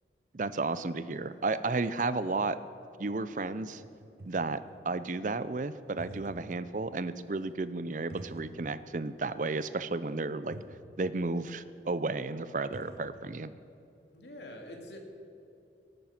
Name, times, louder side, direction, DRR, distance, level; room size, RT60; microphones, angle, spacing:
voice 1, 0.3-2.6 3.0-3.8 4.3-10.6 11.0-13.5, right 3 dB, 45° right, 14 dB, 0.5 m, -33 dB
sound 1, 3.0-3.1 3.3-4.7 5.8-6.6 6.9-7.0 8.1-8.9 9.2-9.3 10.2-10.3 10.5-10.8 12.2-12.3 12.4-13.1, right 1 dB, 60° right, 1.2 m, -48 dB
voice 2, 14.1-15.0, left 1 dB, 75° left, 2 dB, 2.2 m, -46 dB
18.5 x 9.2 x 5.9 m, 2.8 s
head